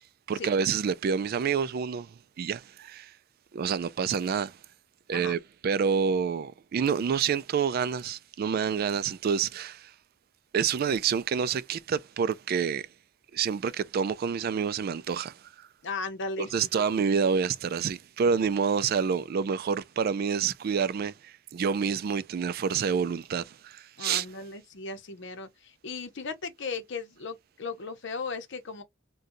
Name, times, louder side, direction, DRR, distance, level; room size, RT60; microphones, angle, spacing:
voice 1, 0.3-3.1 3.5-4.6 5.1-9.9 10.5-12.8 13.3-15.3 16.4-24.3, right 6 dB, 50° right, 0.3 m, -28 dB
voice 2, 15.8-16.7 24.0-28.8, left 4 dB, 65° left, 0.8 m, -37 dB
3.8 x 2.2 x 2.6 m
head